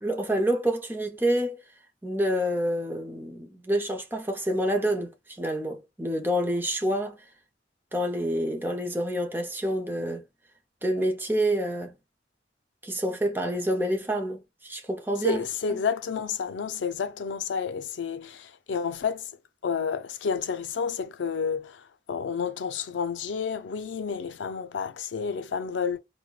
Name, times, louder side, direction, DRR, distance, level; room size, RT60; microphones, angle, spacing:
voice 1, 0.0-1.6 2.0-7.2 7.9-10.2 10.8-12.0 12.8-15.4, equal, 10° right, 0.6 m, -27 dB
voice 2, 15.2-19.3 19.6-26.0, left 6 dB, 90° left, 0.4 m, -30 dB
4.5 x 2.2 x 2.3 m
head